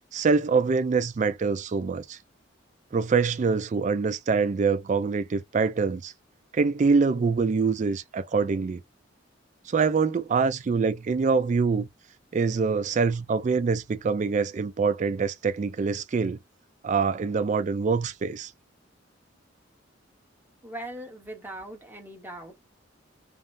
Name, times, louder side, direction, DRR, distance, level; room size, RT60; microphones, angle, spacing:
voice 1, 0.1-2.2 2.9-6.1 6.5-8.8 9.7-11.9 12.3-16.4 16.8-18.5, right 4 dB, 40° right, 0.3 m, -25 dB
voice 2, 20.6-22.5, right 1 dB, 10° right, 0.9 m, -40 dB
3.4 x 2.0 x 2.6 m
head